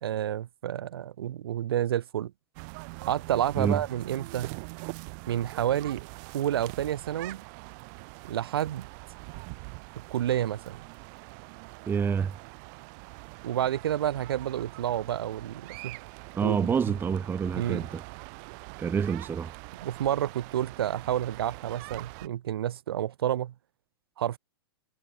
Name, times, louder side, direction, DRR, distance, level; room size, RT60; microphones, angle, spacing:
voice 1, 0.0-2.3 3.0-4.5 5.3-6.0 6.3-7.4 8.3-8.9 10.1-10.8 13.4-16.0 16.4-16.7 17.5-17.9 19.8-23.5 24.2-24.4, right 11 dB, 70° right, 1.4 m, -29 dB
sound 1, 2.5-22.3, right 35 dB, 45° right, 7.3 m, -44 dB
voice 2, 11.9-12.3 16.3-18.0 18.8-19.5, right 6 dB, 15° right, 1.0 m, -27 dB
hypercardioid pair, 115°, 13 cm